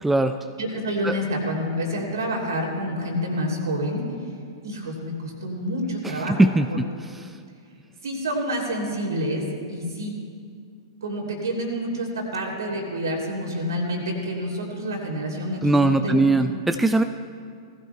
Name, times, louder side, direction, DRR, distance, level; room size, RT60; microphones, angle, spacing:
voice 1, 0.0-0.4 1.0-1.2 6.3-6.9 15.6-17.0, right 2 dB, 5° right, 8 dB, 0.3 m, -20 dB
voice 2, 0.6-4.0 4.6-6.4 6.7-6.8 8.0-10.1 11.0-16.3, equal, 65° right, 0 dB, 2.8 m, -28 dB
19.0 x 15.0 x 2.2 m, 2.2 s
figure-of-eight pair, 100°, 2 cm